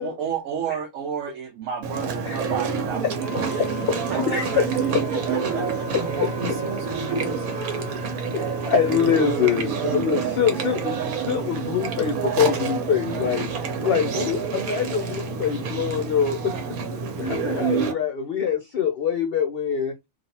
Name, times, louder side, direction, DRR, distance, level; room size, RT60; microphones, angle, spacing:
voice 1, 0.0-5.9 13.1-13.4, right 8 dB, 75° right, 1.0 m, -32 dB
Chewing mastication, 1.8-17.9, right 5 dB, 90° right, 1.2 m, -28 dB
Wind instrument woodwind instrument, 3.2-9.4, left 2 dB, 20° right, 1.0 m, -38 dB
voice 2, 3.6-4.7 5.9-6.0 8.3-13.5 13.8-16.6 17.2-19.9, left 7 dB, 60° left, 0.6 m, -24 dB
voice 3, 5.9-7.5, right 3 dB, 50° right, 1.1 m, -38 dB
3.2 x 2.5 x 2.7 m
omnidirectional pair, 1.5 m